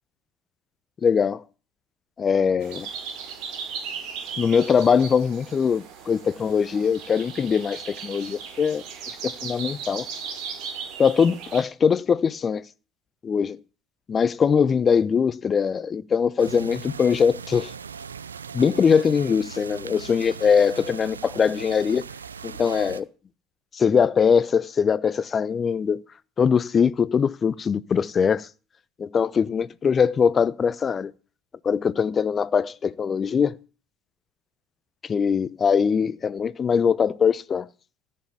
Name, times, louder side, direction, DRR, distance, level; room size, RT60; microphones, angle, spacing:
voice 1, 1.0-1.4 2.2-2.9 4.4-8.8 9.2-10.1 11.0-12.6 13.2-13.6 14.1-17.7 18.5-22.1 22.4-23.1 23.7-26.0 26.4-28.5 29.0-31.1 31.6-33.6 35.0-37.7, left 6 dB, 30° left, 0.7 m, -22 dB
sound 1, 2.6-11.6, right 6 dB, 60° right, 4.4 m, -37 dB
sound 2, 16.4-23.0, right 6 dB, 85° right, 0.6 m, -39 dB
14.5 x 7.7 x 8.3 m
hypercardioid pair, 70°, 0 cm